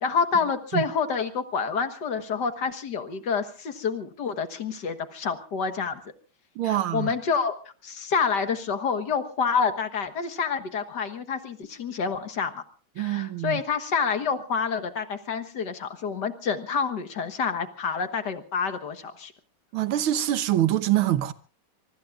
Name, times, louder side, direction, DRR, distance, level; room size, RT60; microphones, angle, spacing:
voice 1, 0.0-6.0 6.6-12.6 13.0-19.3, left 5 dB, 55° left, 1.9 m, -28 dB
voice 2, 6.6-7.1 13.0-13.6 19.7-21.3, right 13 dB, 85° right, 1.8 m, -25 dB
25.0 x 23.5 x 2.5 m
omnidirectional pair, 2.2 m